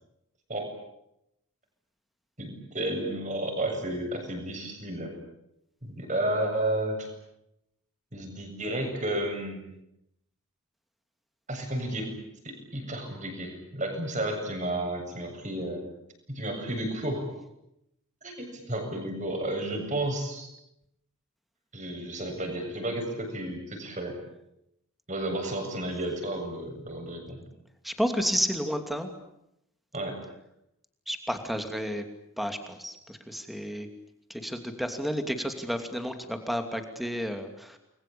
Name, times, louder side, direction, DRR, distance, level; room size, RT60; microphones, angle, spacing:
voice 1, 2.4-5.1 5.8-7.1 8.1-9.6 11.5-12.1 12.4-15.9 16.3-17.4 18.2-20.5 21.7-24.2 25.1-27.4 29.9-30.2, right 1 dB, 35° right, 4 dB, 7.7 m, -32 dB
voice 2, 27.8-29.1 31.1-32.1 32.4-33.9 34.3-37.8, equal, ahead, 6 dB, 2.7 m, -31 dB
30.0 x 22.5 x 8.6 m, 0.82 s
head